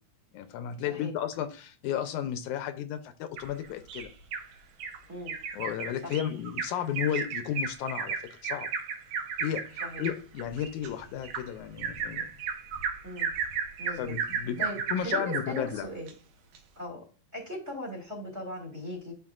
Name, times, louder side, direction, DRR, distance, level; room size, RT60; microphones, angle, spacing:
voice 1, 0.3-4.1 5.5-8.7 9.4-12.3 14.0-14.6 14.9-15.9, left 10 dB, 80° left, 1.9 m, -33 dB
Bird vocalization bird call bird song, 3.4-4.5 4.8-5.0 5.3-15.6 16.1-16.2 16.6-16.7, right 6 dB, 80° right, 2.6 m, -34 dB
voice 2, 13.8-14.2 14.6-16.1 16.8-17.0 17.3-19.1, left 1 dB, 25° right, 2.1 m, -38 dB
11.0 x 4.8 x 2.4 m
omnidirectional pair, 3.6 m